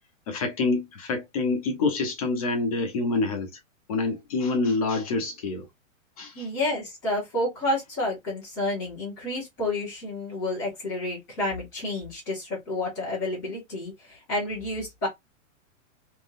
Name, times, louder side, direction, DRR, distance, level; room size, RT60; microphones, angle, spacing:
voice 1, 0.3-3.6 3.9-5.7 6.2-6.5, left 3 dB, 25° left, 0.8 m, -27 dB
voice 2, 6.3-15.1, left 1 dB, 5° left, 0.4 m, -30 dB
3.7 x 3.1 x 2.6 m
hypercardioid pair, 180°, 40 cm